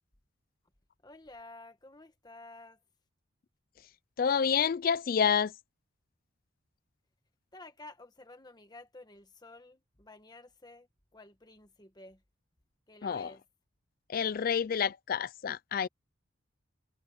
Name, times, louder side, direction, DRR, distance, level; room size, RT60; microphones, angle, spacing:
voice 1, 1.0-2.8 7.5-12.2 12.9-13.4, left 2 dB, 20° left, 1.3 m, -52 dB
voice 2, 4.2-5.5 13.0-13.3 14.1-15.9, left 7 dB, 45° left, 0.4 m, -28 dB
head